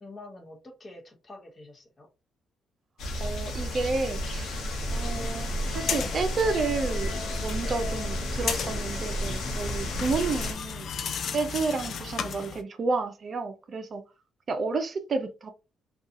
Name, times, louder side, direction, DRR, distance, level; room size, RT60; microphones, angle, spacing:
voice 1, 0.0-2.1, left 2 dB, 30° left, 0.8 m, -46 dB
sound 1, 3.0-10.5, equal, 75° left, 0.8 m, -32 dB
voice 2, 3.2-4.6 4.9-10.9 11.3-14.0 14.5-15.5, right 4 dB, 45° right, 0.4 m, -30 dB
sound 2, 4.9-12.6, left 6 dB, 60° left, 0.4 m, -35 dB
2.6 x 2.3 x 2.5 m
cardioid pair, 90°, 0 cm